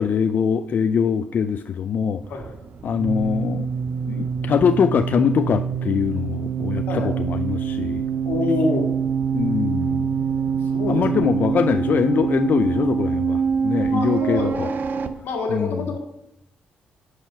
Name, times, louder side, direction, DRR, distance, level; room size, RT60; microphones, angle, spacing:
voice 1, 0.0-2.2 2.8-3.7 4.1-8.0 9.3-10.1 10.9-14.7 15.5-15.8, left 7 dB, 60° left, 10 dB, 0.4 m, -22 dB
sound 1, 2.2-15.1, right 6 dB, 60° right, 0.7 m, -25 dB
voice 2, 8.3-8.9 10.7-11.2 13.9-14.7 15.2-16.0, left 3 dB, 85° left, 2 dB, 1.8 m, -26 dB
10.0 x 4.9 x 5.6 m, 0.84 s
cardioid pair, 70°, 4 cm